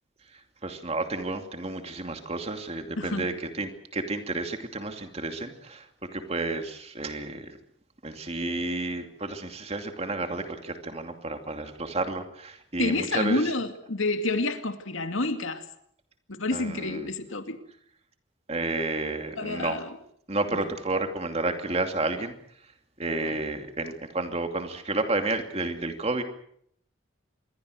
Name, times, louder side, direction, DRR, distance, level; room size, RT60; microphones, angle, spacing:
voice 1, 0.3-7.6 8.0-13.4 16.5-17.1 18.5-19.8 20.3-22.3 23.0-26.2, right 2 dB, 30° right, 2.7 m, -31 dB
voice 2, 3.0-3.3 12.8-15.6 16.3-17.6 19.4-20.0 20.5-20.7 23.2-23.4, left 2 dB, 80° left, 2.4 m, -29 dB
27.0 x 22.5 x 6.6 m
head